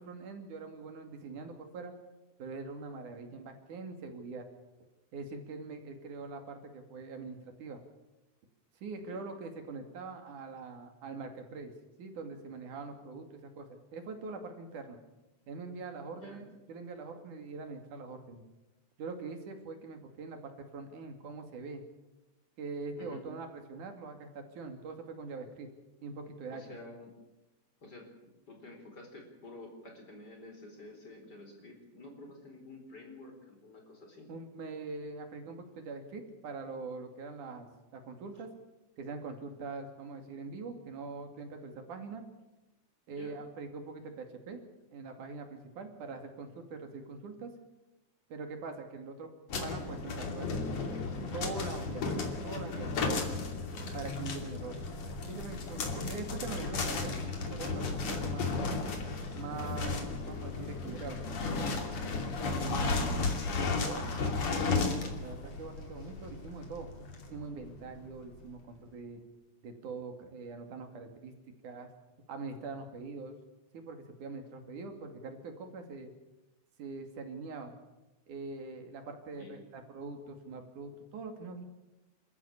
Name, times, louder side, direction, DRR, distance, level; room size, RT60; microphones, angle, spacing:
voice 1, 0.0-1.9 2.4-4.4 5.1-7.8 8.8-11.7 12.0-15.0 15.5-18.4 19.0-21.8 22.6-25.7 26.0-26.6 34.3-38.5 39.0-42.2 43.1-44.6 44.9-47.5 48.3-49.3 49.6-50.7 51.3-53.1 53.9-54.8 55.3-58.6 59.3-60.0 60.3-61.2 62.6-63.3 63.6-66.9 67.3-69.2 69.6-71.3 71.6-71.9 72.3-73.4 73.7-76.1 76.8-77.7 78.3-81.6, right 4 dB, 85° right, 5 dB, 4.0 m, -43 dB
voice 2, 16.1-16.4 23.0-23.3 26.5-27.1 27.8-34.3 43.1-43.4 63.8-64.0 79.3-79.6, left 2 dB, 30° left, 3 dB, 4.6 m, -50 dB
sound 1, 49.5-68.2, left 3 dB, 60° left, 3.9 m, -34 dB
27.5 x 14.0 x 8.6 m, 0.98 s
omnidirectional pair, 3.5 m